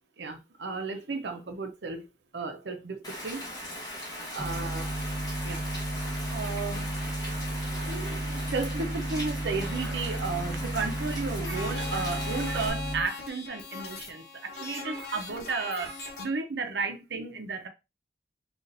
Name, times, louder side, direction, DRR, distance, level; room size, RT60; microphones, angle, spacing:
voice 1, 0.2-2.1 2.3-3.6 4.3-4.9 5.4-5.7 6.3-7.1 7.8-17.7, right 4 dB, 75° right, 0.7 m, -34 dB
Rain, 3.0-12.7, left 1 dB, 20° left, 1.1 m, -39 dB
sound 1, 4.4-13.0, right 1 dB, 15° right, 0.5 m, -33 dB
sound 2, 9.5-16.2, left 4 dB, 55° left, 1.0 m, -41 dB
4.0 x 2.5 x 3.8 m
head